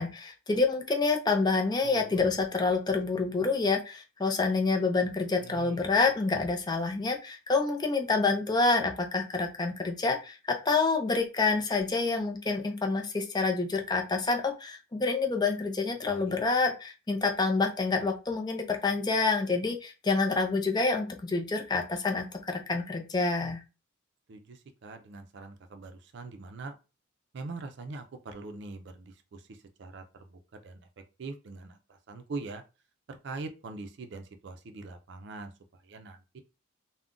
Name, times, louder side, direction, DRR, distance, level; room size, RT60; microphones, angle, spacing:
voice 1, 0.0-23.6, left 3 dB, 20° left, 3 dB, 0.5 m, -27 dB
voice 2, 1.8-2.3 5.0-5.1 5.4-5.8 16.0-16.4 24.3-26.7 27.3-30.9 31.2-32.6 33.1-36.4, right 3 dB, 60° right, 7 dB, 0.4 m, -43 dB
2.4 x 2.1 x 3.6 m, 0.31 s
head